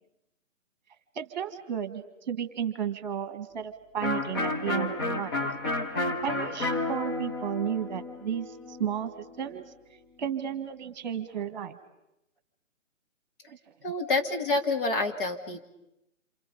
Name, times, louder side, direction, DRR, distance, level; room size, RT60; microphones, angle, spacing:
voice 1, 1.2-5.3 6.2-9.7 10.2-11.8 13.5-13.6, right 8 dB, 35° right, 9 dB, 1.8 m, -33 dB
Electric guitar, 4.0-9.6, left 2 dB, 15° left, 0.9 m, -32 dB
voice 2, 13.8-15.7, left 3 dB, 40° left, 3 dB, 2.3 m, -28 dB
28.0 x 28.0 x 5.5 m, 0.86 s
figure-of-eight pair, 145°, 40 cm